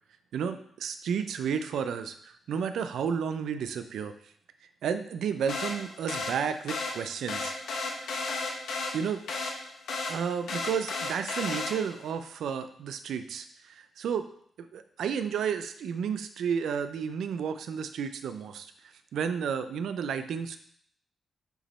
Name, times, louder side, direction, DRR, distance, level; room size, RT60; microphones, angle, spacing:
voice 1, 0.3-4.1 4.8-7.5 8.0-8.1 8.9-9.2 10.1-14.2 14.6-18.7 19.1-20.6, right 7 dB, 80° right, 9 dB, 0.5 m, -32 dB
sound 1, 5.5-12.1, left 3 dB, 85° left, 1.3 m, -34 dB
8.0 x 3.0 x 4.3 m, 0.64 s
cardioid pair, 80°, 0 cm